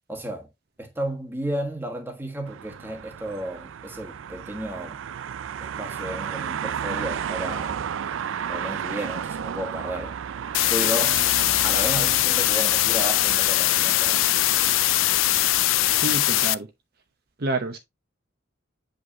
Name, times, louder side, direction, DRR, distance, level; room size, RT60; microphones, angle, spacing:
voice 1, 0.1-0.5 0.8-5.0 5.6-7.9 8.5-10.1 10.7-11.2 11.6-14.2, right 1 dB, 10° right, 1.4 m, -33 dB
sound 1, 2.5-16.5, right 8 dB, 80° right, 0.4 m, -33 dB
sound 2, 10.5-16.5, left 17 dB, 80° left, 0.3 m, -21 dB
voice 2, 15.9-16.7 17.4-17.8, right 2 dB, 50° right, 0.8 m, -28 dB
8.0 x 5.1 x 2.8 m
head